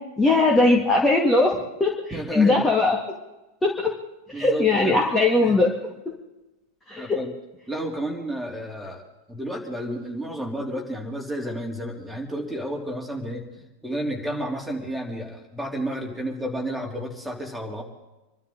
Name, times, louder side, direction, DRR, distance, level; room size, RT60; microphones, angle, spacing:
voice 1, 0.2-1.5 1.8-3.0 3.6-3.9 4.3-5.7 6.9-7.1, left 2 dB, 10° left, -1 dB, 2.2 m, -19 dB
voice 2, 2.1-2.6 4.3-5.0 5.4-5.5 7.0-7.3 7.7-9.0 9.3-13.4 13.8-17.8, equal, 5° right, 0 dB, 3.4 m, -31 dB
26.5 x 12.5 x 4.0 m, 1.0 s
figure-of-eight pair, 90°, 0 cm